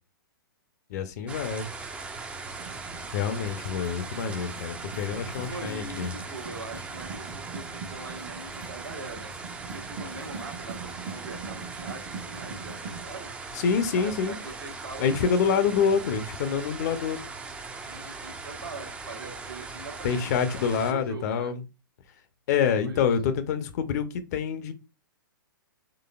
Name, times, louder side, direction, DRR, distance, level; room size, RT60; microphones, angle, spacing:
voice 1, 0.9-1.7 3.1-6.1 13.5-14.3 15.0-17.2 20.0-21.6 22.5-24.7, left 6 dB, 45° left, 0.6 m, -26 dB
sound 1, 1.3-20.9, right 4 dB, 10° right, 0.4 m, -40 dB
sound 2, 2.6-13.1, right 4 dB, 50° right, 1.1 m, -43 dB
voice 2, 5.4-9.3 9.6-13.3 13.9-15.8 17.8-21.6 22.8-23.1, right 3 dB, 75° right, 1.1 m, -42 dB
3.9 x 3.2 x 2.3 m
figure-of-eight pair, 115°, 12 cm